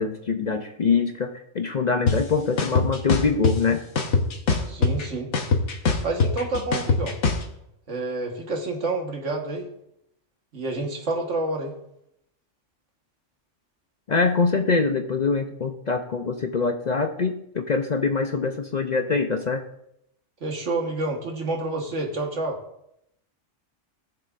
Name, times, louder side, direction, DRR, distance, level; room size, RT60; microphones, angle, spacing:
voice 1, 0.0-3.8 14.1-19.6, left 4 dB, 45° left, 6 dB, 0.6 m, -24 dB
sound 1, 2.1-2.2 2.6-3.5 4.0-5.0 5.3-7.4, left 4 dB, 70° left, 1.3 m, -21 dB
voice 2, 4.6-5.3 6.0-7.2 7.9-9.7 10.5-11.7 20.4-22.6, right 2 dB, 80° right, 1 dB, 1.8 m, -28 dB
18.5 x 6.9 x 2.5 m, 0.78 s
omnidirectional pair, 1.2 m